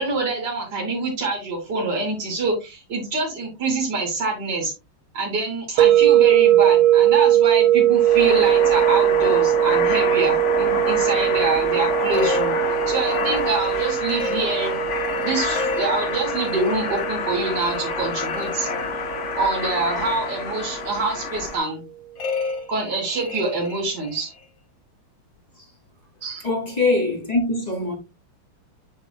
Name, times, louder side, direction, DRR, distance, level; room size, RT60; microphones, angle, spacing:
voice 1, 0.0-4.7 5.1-12.5 12.9-14.7 15.2-18.7 19.3-21.8 22.7-24.3 26.2-26.4, right 3 dB, 50° right, 3.4 m, -26 dB
sound 1, 5.8-20.7, right 12 dB, 75° right, 1.3 m, -20 dB
sound 2, 7.9-21.6, left 6 dB, 45° left, 1.0 m, -28 dB
sound 3, 8.0-9.5 12.1-19.5 22.2-24.5, left 4 dB, 65° left, 2.8 m, -34 dB
voice 2, 26.4-28.0, left 2 dB, 20° left, 2.8 m, -22 dB
9.1 x 7.5 x 2.3 m
omnidirectional pair, 2.3 m